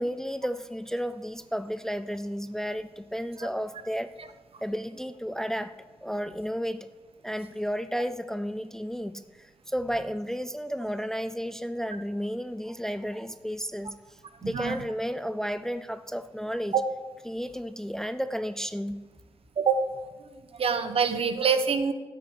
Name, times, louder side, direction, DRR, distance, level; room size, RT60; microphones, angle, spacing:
voice 1, 0.0-4.1 4.6-5.8 6.0-6.9 7.2-14.0 14.4-16.7 17.3-19.0, equal, 5° left, 12 dB, 0.3 m, -32 dB
voice 2, 14.4-14.8 16.7-16.8 19.6-19.8 20.5-21.9, right 6 dB, 70° right, 9 dB, 1.0 m, -25 dB
13.0 x 9.3 x 4.8 m, 1.2 s
wide cardioid pair, 170°, 10 cm